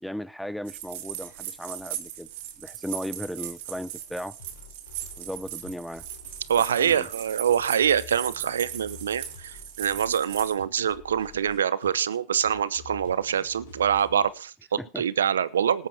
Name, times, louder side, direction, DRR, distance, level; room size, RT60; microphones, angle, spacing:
voice 1, 0.0-2.3 2.6-4.4 5.2-6.1 6.6-7.1 14.8-15.0, equal, ahead, 0.7 m, -36 dB
sound 1, 0.7-10.5, right 12 dB, 70° right, 2.6 m, -38 dB
sound 2, 4.4-14.3, left 7 dB, 75° left, 4.0 m, -49 dB
voice 2, 6.5-15.9, right 8 dB, 90° right, 0.8 m, -25 dB
19.0 x 8.3 x 4.9 m
hypercardioid pair, 100°, 0 cm